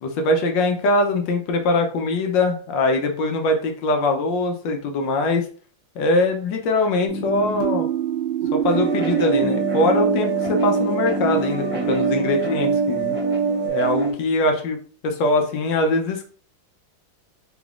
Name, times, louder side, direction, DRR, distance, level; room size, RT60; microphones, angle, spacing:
voice 1, 0.0-5.5 6.0-7.9 8.5-13.2 13.6-14.8 15.0-16.3, left 2 dB, 70° left, 4 dB, 1.3 m, -22 dB
sound 1, 7.1-13.7, right 5 dB, 85° right, 1.5 m, -27 dB
sound 2, 8.7-14.1, right 5 dB, 10° right, 0.7 m, -24 dB
3.9 x 3.4 x 2.4 m, 0.42 s
omnidirectional pair, 2.2 m